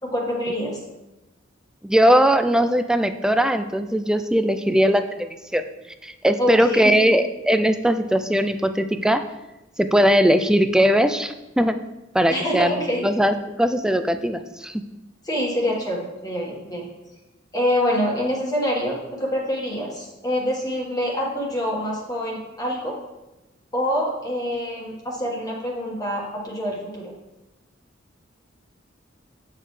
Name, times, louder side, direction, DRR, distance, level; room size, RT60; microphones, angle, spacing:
voice 1, 0.0-0.8 6.4-7.0 12.3-13.1 15.2-16.8 17.5-23.0 23.7-27.1, equal, 20° left, -3 dB, 1.5 m, -26 dB
voice 2, 1.8-5.6 6.0-9.2 9.8-11.8 12.1-14.8, equal, 5° right, 9 dB, 0.4 m, -20 dB
8.7 x 6.5 x 3.2 m, 1.0 s
head